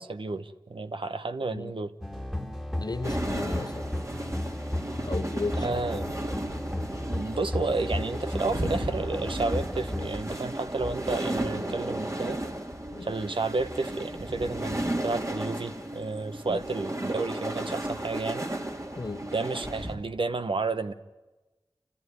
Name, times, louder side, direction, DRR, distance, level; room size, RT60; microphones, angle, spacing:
voice 1, 0.0-1.9 5.6-6.1 7.0-12.4 13.0-18.5 19.3-20.9, right 3 dB, 70° right, 1.0 m, -31 dB
sound 1, 2.0-10.2, left 1 dB, 5° right, 2.1 m, -34 dB
voice 2, 2.8-3.9 5.0-5.7 11.6-11.8 12.9-13.1 16.5-16.6 19.0-19.2, left 3 dB, 50° left, 0.8 m, -35 dB
sound 2, 3.0-20.0, right 1 dB, 35° right, 2.4 m, -34 dB
29.0 x 14.0 x 9.6 m
wide cardioid pair, 50°, 9 cm